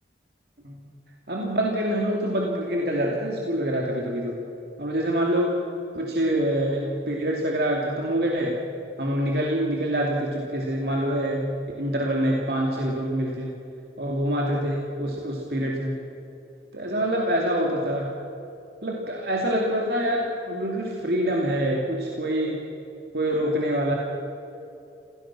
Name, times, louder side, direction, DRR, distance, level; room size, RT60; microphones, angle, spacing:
voice 1, 1.3-4.4 4.8-5.5 5.9-8.6 9.0-11.5 11.8-13.5 14.0-16.0 16.7-18.2 18.8-22.6 23.1-23.9, right 1 dB, 60° right, -1 dB, 2.7 m, -25 dB
27.0 x 17.5 x 6.1 m, 2.9 s
head